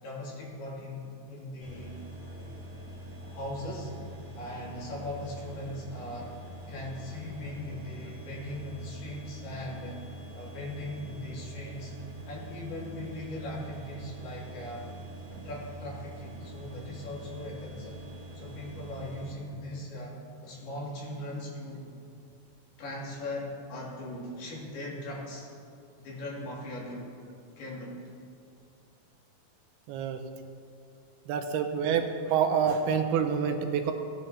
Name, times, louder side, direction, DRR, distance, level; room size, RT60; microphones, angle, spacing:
voice 1, 0.0-2.0 2.3-2.6 3.2-3.9 4.4-6.3 6.7-11.9 12.3-14.9 15.3-18.0 18.4-21.9 22.8-25.5 26.0-27.1 27.6-28.0, left 1 dB, 75° left, -5 dB, 4.4 m, -39 dB
sound 1, 1.6-19.3, right 1 dB, 40° right, 2.4 m, -44 dB
voice 2, 29.9-30.2 31.3-33.9, right 7 dB, 85° right, 5 dB, 2.7 m, -27 dB
16.5 x 10.5 x 2.9 m, 2.4 s
omnidirectional pair, 4.6 m